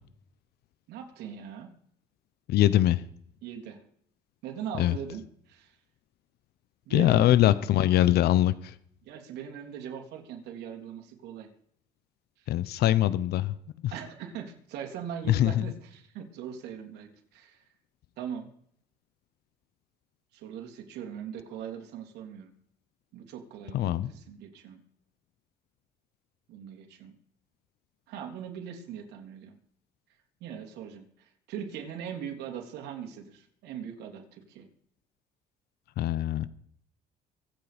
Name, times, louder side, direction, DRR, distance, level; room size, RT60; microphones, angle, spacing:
voice 1, 0.9-1.7 3.4-3.8 4.4-5.2 5.5-5.7 6.9-7.3 9.0-11.5 13.9-17.6 18.2-18.5 20.3-22.5 23.1-24.8 26.5-27.2 28.1-29.6 30.4-31.1 31.5-34.7, right 8 dB, 85° right, 2 dB, 3.4 m, -40 dB
voice 2, 2.5-3.0 4.8-5.0 6.9-8.8 12.5-13.5 13.8-13.9 15.3-15.7 23.7-24.1 36.0-36.5, left 13 dB, 70° left, 16 dB, 0.8 m, -23 dB
24.5 x 8.7 x 5.2 m, 0.66 s
cardioid pair, 110°, 17 cm